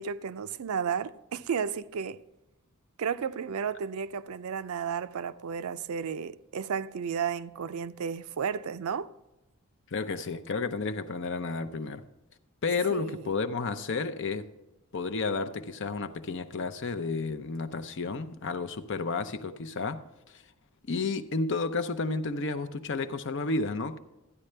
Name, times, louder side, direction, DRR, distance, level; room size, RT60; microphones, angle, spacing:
voice 1, 0.0-2.2 3.0-9.1 12.9-13.3, right 7 dB, 80° right, 0.4 m, -33 dB
voice 2, 9.9-12.0 12.6-14.5 14.9-20.0 20.3-20.4 20.8-24.0, left 4 dB, 55° left, 0.6 m, -31 dB
13.0 x 9.7 x 3.3 m
head